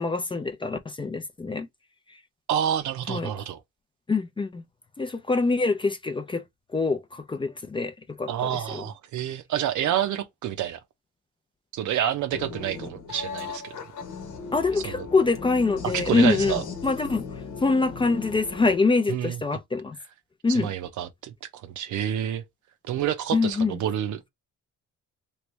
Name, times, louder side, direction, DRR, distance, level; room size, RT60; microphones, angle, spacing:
voice 1, 0.0-1.7 3.1-3.3 4.1-4.6 5.0-6.4 6.7-8.8 14.5-17.3 17.6-20.0 20.4-20.7 23.3-23.8, left 3 dB, 20° left, 0.3 m, -25 dB
voice 2, 2.5-3.6 8.3-10.8 11.7-13.7 14.8-15.1 15.9-16.6 19.1-19.4 20.5-21.3 21.6-22.4 22.9-24.2, right 10 dB, 80° right, 0.7 m, -28 dB
sound 1, 12.3-18.8, left 5 dB, 80° left, 1.0 m, -37 dB
3.2 x 2.5 x 3.1 m
cardioid pair, 140°, 30 cm